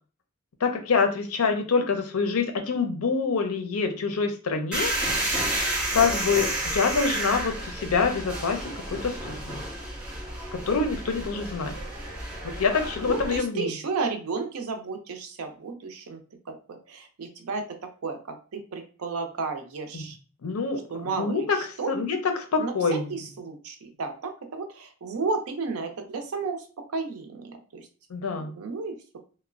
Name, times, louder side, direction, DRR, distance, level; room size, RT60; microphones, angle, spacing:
voice 1, 0.6-4.9 5.9-9.6 10.5-11.7 12.4-13.7 19.9-20.1 20.4-20.8 21.2-21.6 21.9-22.2 22.5-23.2 28.1-28.5, left 5 dB, 80° left, 6 dB, 0.5 m, -26 dB
sound 1, 4.7-13.4, right 1 dB, 5° right, 1.0 m, -31 dB
voice 2, 13.0-16.2 16.5-17.7 18.0-20.2 20.9-21.9 22.6-27.9 28.4-29.2, right 4 dB, 85° right, 5 dB, 0.5 m, -33 dB
2.9 x 2.1 x 2.4 m, 0.37 s
head